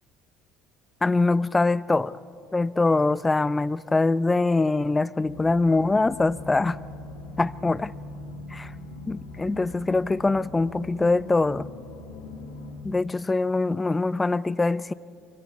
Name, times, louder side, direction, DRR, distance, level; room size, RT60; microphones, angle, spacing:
voice 1, 1.0-2.1 2.5-6.8 7.4-7.9 8.5-8.7 9.1-11.7 12.8-14.9, left 3 dB, 20° left, 0.6 m, -23 dB
sound 1, 5.2-12.7, left 2 dB, 85° left, 5.4 m, -41 dB
25.0 x 23.0 x 8.4 m
hypercardioid pair, 70°, 0 cm